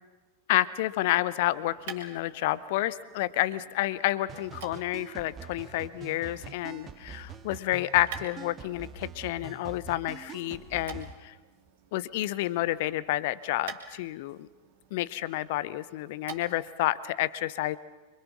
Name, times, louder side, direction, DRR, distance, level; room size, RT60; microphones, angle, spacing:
voice 1, 0.5-11.3 11.9-14.5 14.9-17.8, left 16 dB, 50° left, 18 dB, 0.8 m, -30 dB
sound 1, 1.2-16.8, right 7 dB, 50° right, 3.0 m, -50 dB
sound 2, 4.3-11.1, right 5 dB, 25° right, 2.1 m, -45 dB
26.5 x 24.5 x 6.1 m, 1.2 s
figure-of-eight pair, 90°, 0 cm